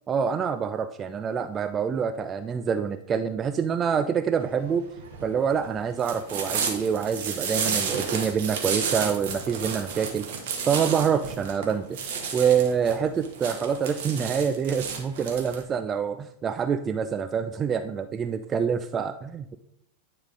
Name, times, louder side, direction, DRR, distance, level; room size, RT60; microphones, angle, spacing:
voice 1, 0.1-4.9 5.2-10.3 10.7-12.0 12.3-19.6, right 7 dB, 25° right, 10 dB, 0.3 m, -26 dB
sound 1, 4.4-15.6, right 6 dB, 55° right, 1.3 m, -31 dB
9.5 x 3.8 x 3.9 m, 0.75 s
figure-of-eight pair, 90°, 0 cm